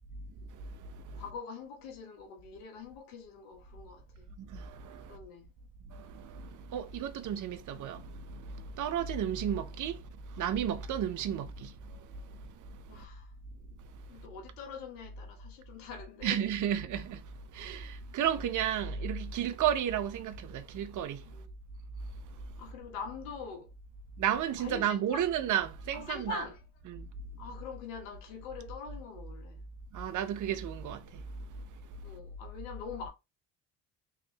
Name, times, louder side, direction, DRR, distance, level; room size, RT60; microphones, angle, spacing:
voice 1, 0.5-1.2 4.4-5.2 5.9-13.0 13.8-14.3 16.2-21.4 22.1-22.5 24.2-26.4 26.9-27.1 29.9-32.2, right 9 dB, 55° right, 0.7 m, -34 dB
voice 2, 1.1-4.3 5.1-5.5 12.9-13.3 14.1-16.4 21.3-21.4 22.6-23.7 24.6-25.3 25.9-26.6 27.4-29.6 32.0-33.1, left 5 dB, 85° left, 1.2 m, -44 dB
3.7 x 3.1 x 2.8 m
hypercardioid pair, 65°, 37 cm